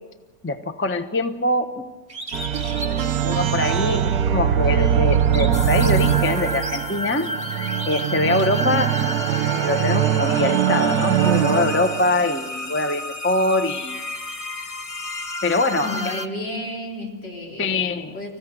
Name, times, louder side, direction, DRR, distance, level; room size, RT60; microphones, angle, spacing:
voice 1, 0.4-1.9 2.8-7.3 7.9-9.0 9.5-14.0 15.4-16.2 17.6-18.2, left 2 dB, 10° left, 8 dB, 0.7 m, -23 dB
Bird, 2.1-4.1 4.5-9.0, right 1 dB, 20° right, 1.9 m, -38 dB
sound 1, 2.3-12.4, right 9 dB, 60° right, 1.3 m, -22 dB
sound 2, 5.5-16.3, left 1 dB, 50° left, 0.4 m, -32 dB
voice 2, 15.8-17.7 18.1-18.4, left 1 dB, 75° left, -1 dB, 4.3 m, -31 dB
26.0 x 16.0 x 7.9 m, 1.3 s
omnidirectional pair, 1.9 m